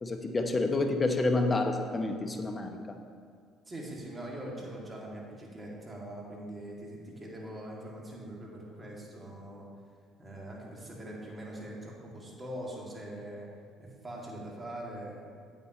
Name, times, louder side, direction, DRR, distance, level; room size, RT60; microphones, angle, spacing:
voice 1, 0.0-2.7, left 2 dB, 30° left, 5 dB, 0.9 m, -28 dB
voice 2, 3.7-9.7 10.2-13.5 13.8-15.3, right 1 dB, 25° right, -3 dB, 2.4 m, -42 dB
8.9 x 8.5 x 3.1 m, 2.1 s
hypercardioid pair, 60°, 0 cm